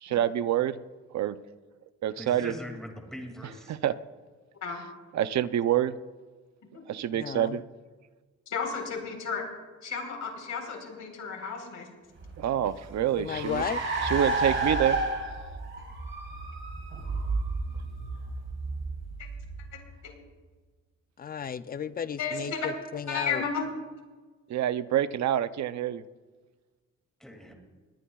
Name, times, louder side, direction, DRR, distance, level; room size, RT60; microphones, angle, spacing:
voice 1, 0.0-0.8 1.1-1.4 2.0-2.5 3.7-3.9 5.1-6.0 6.9-7.6 12.4-13.6 14.0-15.0 24.5-26.0, right 11 dB, 65° right, 13 dB, 0.6 m, -27 dB
voice 2, 2.2-3.8 27.2-27.5, equal, ahead, 2 dB, 2.3 m, -41 dB
voice 3, 7.1-7.6 13.2-13.8 21.2-23.4, left 7 dB, 30° left, 13 dB, 0.4 m, -34 dB
voice 4, 8.5-9.4 9.8-11.9 19.2-19.3 20.0-20.1 22.2-22.7 23.1-23.6, left 5 dB, 70° left, 2 dB, 4.0 m, -33 dB
Car, 12.2-20.0, right 3 dB, 40° right, 3.5 m, -32 dB
20.0 x 19.5 x 2.3 m, 1.3 s
wide cardioid pair, 165°, 30 cm